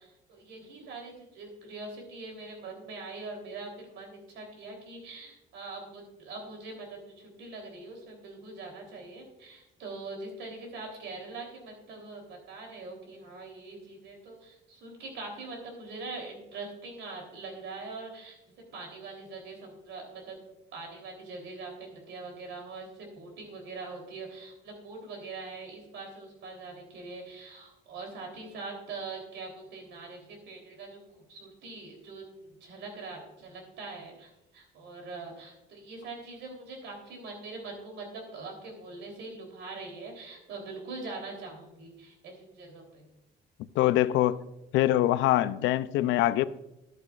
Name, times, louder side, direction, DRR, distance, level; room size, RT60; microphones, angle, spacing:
voice 1, 0.0-18.4 18.7-20.4 20.7-31.0 31.3-43.1, right 3 dB, 70° right, 3.4 m, -43 dB
voice 2, 43.8-44.4 44.7-46.5, left 14 dB, 85° left, 0.5 m, -24 dB
13.5 x 11.0 x 2.4 m
cardioid pair, 155°, 19 cm